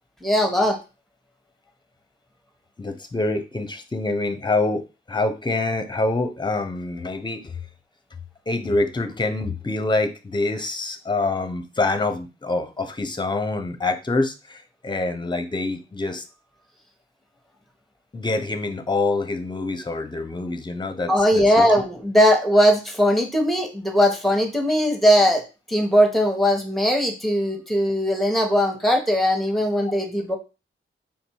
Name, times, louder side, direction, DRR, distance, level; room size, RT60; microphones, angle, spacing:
voice 1, 0.2-0.8 21.1-25.4 25.7-30.4, equal, ahead, 5 dB, 1.1 m, -19 dB
voice 2, 2.8-4.8 5.1-7.5 8.5-16.2 18.1-21.7, left 2 dB, 20° left, 8 dB, 0.7 m, -26 dB
3.7 x 2.6 x 4.5 m, 0.30 s
cardioid pair, 60°, 21 cm